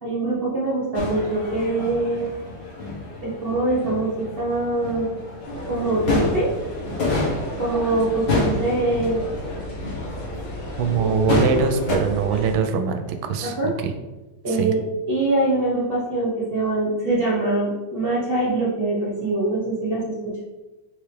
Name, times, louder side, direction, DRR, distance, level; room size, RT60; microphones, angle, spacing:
voice 1, 0.0-2.3 3.2-5.1 5.7-6.5 7.6-9.5 11.0-11.1 13.4-13.7 14.4-20.1, right 2 dB, 45° right, -6 dB, 0.7 m, -23 dB
sound 1, 0.9-12.0, left 2 dB, 45° left, 1.4 m, -29 dB
sound 2, 5.4-12.6, equal, 85° left, 2.2 m, -34 dB
voice 2, 10.8-13.9 14.5-14.7, right 5 dB, 75° right, 6 dB, 1.3 m, -23 dB
4.8 x 3.4 x 3.2 m, 1.1 s
omnidirectional pair, 2.3 m